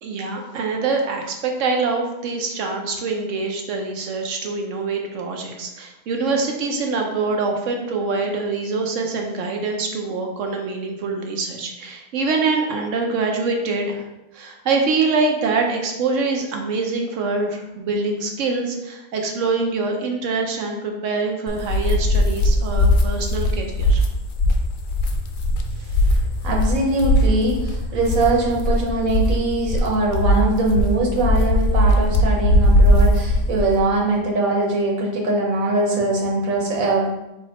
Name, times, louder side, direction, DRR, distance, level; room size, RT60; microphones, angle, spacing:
voice 1, 0.0-14.0 14.3-24.0 25.7-26.2, right 4 dB, 70° right, 2 dB, 1.0 m, -24 dB
sound 1, 21.5-33.8, left 1 dB, 60° left, 0.6 m, -19 dB
voice 2, 26.4-37.1, right 2 dB, 90° right, -1 dB, 1.4 m, -22 dB
4.4 x 2.8 x 4.2 m, 0.97 s
omnidirectional pair, 1.4 m